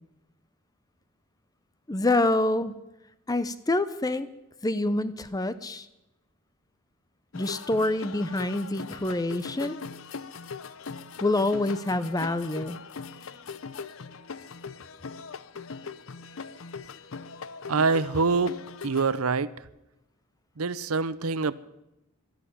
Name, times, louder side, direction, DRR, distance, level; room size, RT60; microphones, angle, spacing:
voice 1, 1.9-2.8 3.3-4.3 4.6-5.9 7.3-9.8 11.2-12.8, left 2 dB, 15° left, 13 dB, 0.6 m, -26 dB
sound 1, 7.3-19.2, left 5 dB, 65° left, 0.7 m, -40 dB
voice 2, 17.7-18.6 18.8-19.5 20.6-21.5, right 4 dB, 80° right, 17 dB, 0.7 m, -25 dB
12.5 x 11.0 x 9.9 m, 0.93 s
head